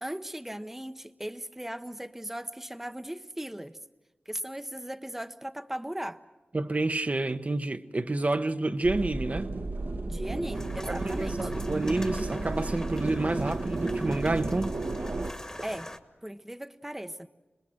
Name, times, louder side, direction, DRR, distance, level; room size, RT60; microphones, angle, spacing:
voice 1, 0.0-3.8 4.3-6.2 10.1-11.5 15.6-15.9 16.2-17.3, right 1 dB, 10° right, 0.7 m, -37 dB
voice 2, 6.5-9.5 10.9-14.8, right 2 dB, 40° right, 0.8 m, -29 dB
sound 1, 8.8-15.3, right 2 dB, 65° right, 1.1 m, -33 dB
sound 2, 10.5-16.0, left 1 dB, 15° left, 1.4 m, -44 dB
27.0 x 21.0 x 7.7 m
wide cardioid pair, 55°, 4 cm